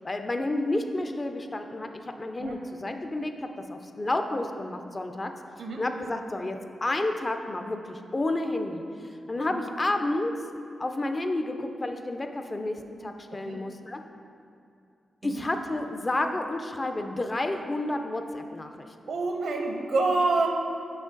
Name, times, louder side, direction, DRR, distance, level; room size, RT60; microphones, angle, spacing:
voice 1, 0.0-3.3 3.7-5.3 5.8-10.3 10.8-14.0 15.2-18.9, left 2 dB, 25° left, 6 dB, 0.3 m, -30 dB
voice 2, 19.1-20.5, right 3 dB, 80° right, 2 dB, 0.7 m, -27 dB
6.3 x 5.0 x 3.7 m, 2.6 s
wide cardioid pair, 130°, 0 cm